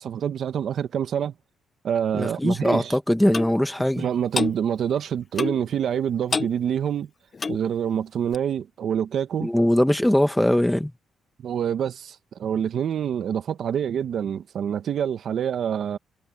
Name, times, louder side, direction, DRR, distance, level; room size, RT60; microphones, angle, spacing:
voice 1, 0.0-1.3 1.8-3.0 4.0-7.1 7.5-9.5 11.4-16.0, right 8 dB, 65° right, 1.2 m, -26 dB
voice 2, 2.2-4.0 9.4-10.9, left 1 dB, 5° left, 1.7 m, -21 dB
Clock, 3.3-3.5 4.3-4.6 5.4-5.7 6.3-6.6 7.3-7.6 8.3-8.4, left 4 dB, 35° left, 0.8 m, -27 dB
cardioid pair, 90°, 0 cm